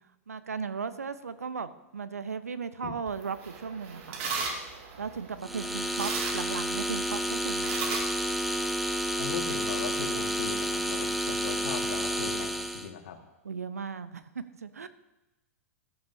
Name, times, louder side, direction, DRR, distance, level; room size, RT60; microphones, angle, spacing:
voice 1, 0.3-4.2 5.0-7.8 13.4-14.9, right 5 dB, 85° right, 12 dB, 0.8 m, -36 dB
sound 1, 3.1-9.1, right 4 dB, 55° right, 2.3 m, -38 dB
sound 2, 5.4-12.9, equal, ahead, 0.9 m, -30 dB
voice 2, 9.2-13.2, left 7 dB, 65° left, 5 dB, 1.8 m, -39 dB
18.0 x 12.5 x 2.7 m, 1.0 s
hypercardioid pair, 100°, 8 cm